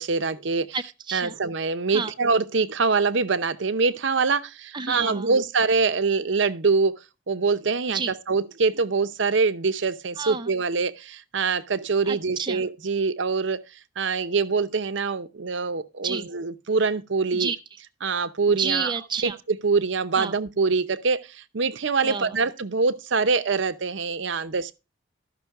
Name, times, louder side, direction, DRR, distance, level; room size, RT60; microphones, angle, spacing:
voice 1, 0.0-0.7 1.1-6.9 7.3-8.0 8.3-13.6 14.0-17.5 18.0-18.9 19.2-19.3 19.6-24.7, right 4 dB, 65° right, 0.7 m, -24 dB
voice 2, 0.7-1.3 1.9-2.1 4.7-5.3 7.9-8.1 10.2-10.5 12.0-12.6 16.0-16.3 17.3-17.6 18.5-19.4 20.2-20.3 22.0-22.4, right 5 dB, 20° right, 0.5 m, -30 dB
13.0 x 6.1 x 4.6 m
head